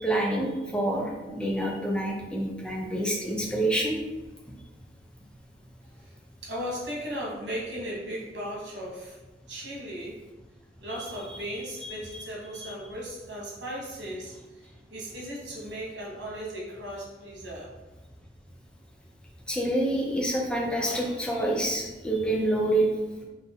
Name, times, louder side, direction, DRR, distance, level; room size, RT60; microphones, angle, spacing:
voice 1, 0.0-4.0 10.9-11.4 11.8-12.2 12.5-12.7 19.5-22.9, right 1 dB, 5° left, -1 dB, 0.5 m, -28 dB
voice 2, 6.4-9.2 9.5-10.2 10.8-17.7, equal, 75° right, -4 dB, 1.4 m, -37 dB
4.0 x 2.7 x 3.5 m, 1.2 s
head